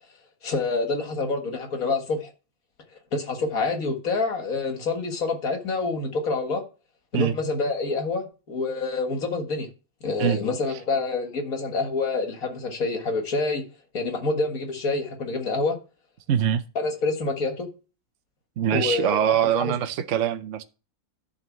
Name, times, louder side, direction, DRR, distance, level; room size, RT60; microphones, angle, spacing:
voice 1, 0.4-2.3 3.1-6.6 7.1-9.7 10.0-13.6 13.9-15.8 16.8-17.7 18.7-19.2 19.5-19.7, left 3 dB, 75° left, 2.1 m, -27 dB
voice 2, 16.3-16.6 18.6-20.6, right 10 dB, 65° right, 1.0 m, -23 dB
11.0 x 4.0 x 7.2 m
omnidirectional pair, 1.5 m